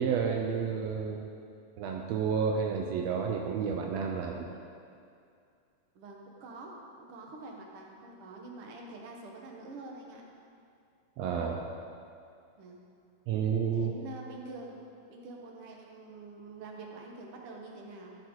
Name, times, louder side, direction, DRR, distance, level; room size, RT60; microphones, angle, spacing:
voice 1, 0.0-1.3 1.8-4.5 11.2-11.7 13.3-13.9, right 6 dB, 80° right, 1 dB, 1.5 m, -30 dB
voice 2, 6.0-10.2 12.6-12.8 13.7-14.8 15.1-18.2, right 3 dB, 55° right, 0 dB, 1.8 m, -46 dB
14.0 x 6.5 x 4.7 m, 2.5 s
omnidirectional pair, 3.7 m